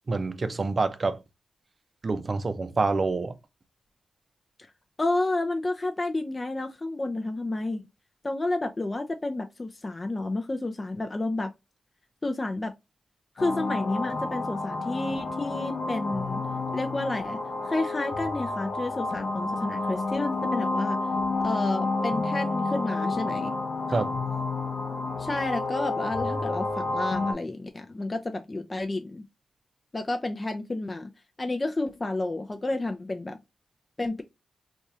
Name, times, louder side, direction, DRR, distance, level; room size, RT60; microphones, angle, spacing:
voice 1, 0.1-1.2 2.0-3.3 23.9-24.1, right 3 dB, 45° right, 0.5 m, -27 dB
voice 2, 5.0-7.8 8.2-11.5 12.2-12.7 13.4-16.4 16.7-17.4 17.6-21.0 21.4-23.5 25.2-29.2 29.9-31.1 31.4-33.4 34.0-34.2, left 2 dB, 30° left, 0.4 m, -30 dB
sound 1, 13.4-27.3, left 3 dB, 65° left, 0.7 m, -30 dB
2.6 x 2.4 x 4.1 m
cardioid pair, 60°, 0 cm